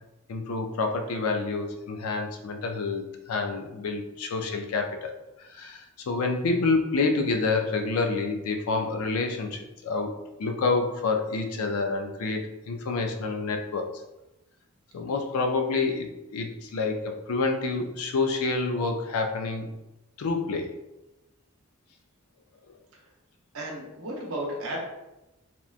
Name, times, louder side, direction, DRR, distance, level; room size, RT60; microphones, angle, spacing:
voice 1, 0.3-5.1 5.5-10.1 10.4-13.9 14.9-19.8 20.2-20.7, left 3 dB, 85° left, 4 dB, 0.4 m, -28 dB
voice 2, 23.5-24.8, right 1 dB, 80° right, -2 dB, 0.7 m, -33 dB
2.9 x 2.1 x 2.4 m, 0.94 s
head